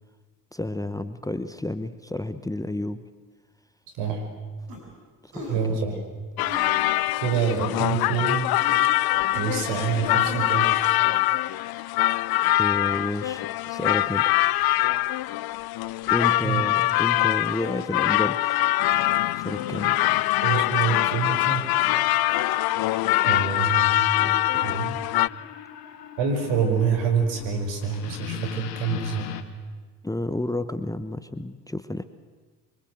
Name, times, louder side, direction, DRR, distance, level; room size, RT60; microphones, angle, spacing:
voice 1, 0.5-3.1 5.2-5.8 6.4-6.5 12.6-14.3 16.1-18.6 19.4-20.0 30.0-32.0, left 1 dB, 5° left, 11 dB, 1.2 m, -31 dB
voice 2, 3.9-4.3 5.5-6.0 7.2-8.5 9.3-10.7 16.4-16.6 20.4-21.6 23.2-24.0 24.6-25.0 26.2-29.3, right 6 dB, 65° right, 5 dB, 5.6 m, -26 dB
sound 1, 4.7-4.8 5.3-5.6 6.4-6.7 7.4-7.7 8.5-8.9 9.3-10.8, equal, 80° right, 7.0 m, -39 dB
sound 2, 6.4-25.3, left 16 dB, 50° left, 0.7 m, -23 dB
sound 3, 18.8-29.4, left 11 dB, 85° left, 1.6 m, -39 dB
25.0 x 24.0 x 7.9 m, 1.4 s
hypercardioid pair, 65°, 47 cm